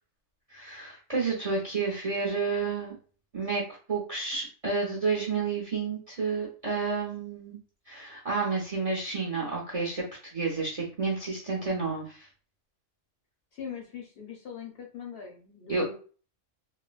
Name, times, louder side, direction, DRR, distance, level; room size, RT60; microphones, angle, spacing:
voice 1, 0.5-3.0 3.3-3.6 3.9-7.6 7.9-10.0 10.3-12.3 15.7-15.9, right 4 dB, 40° right, -4 dB, 0.5 m, -30 dB
voice 2, 13.5-16.0, left 7 dB, 60° left, 0 dB, 0.7 m, -41 dB
3.1 x 2.0 x 2.3 m, 0.39 s
omnidirectional pair, 1.3 m